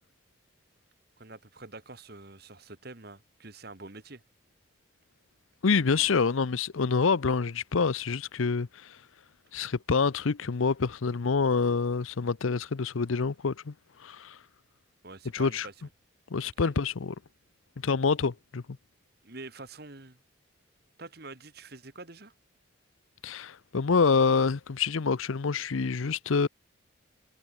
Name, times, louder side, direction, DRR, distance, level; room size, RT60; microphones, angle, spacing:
voice 1, 1.2-4.2 15.0-15.7 16.4-16.7 19.2-20.2 21.0-22.3, right 3 dB, 50° right, 1.9 m, -46 dB
voice 2, 5.6-8.9 9.5-13.7 14.0-14.4 15.3-15.7 16.3-17.1 17.8-18.6 23.2-26.5, left 5 dB, 80° left, 0.6 m, -27 dB
head